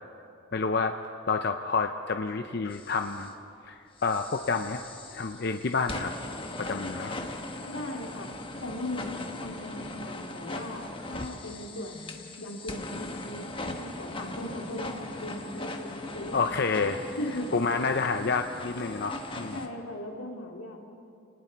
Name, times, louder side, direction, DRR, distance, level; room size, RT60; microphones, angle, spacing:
voice 1, 0.5-1.0 1.3-3.3 3.7-4.8 5.1-6.1 6.6-7.2 16.3-17.0 17.5-19.6, left 4 dB, 50° left, 6 dB, 0.6 m, -29 dB
sound 1, 2.7-3.3 4.0-19.7, left 2 dB, 25° left, 1.2 m, -39 dB
voice 2, 7.7-8.3 8.6-9.1 9.4-16.9 17.2-17.6 19.5-20.8, left 1 dB, 85° left, 1 dB, 2.6 m, -38 dB
30.0 x 19.0 x 4.6 m, 2.7 s
head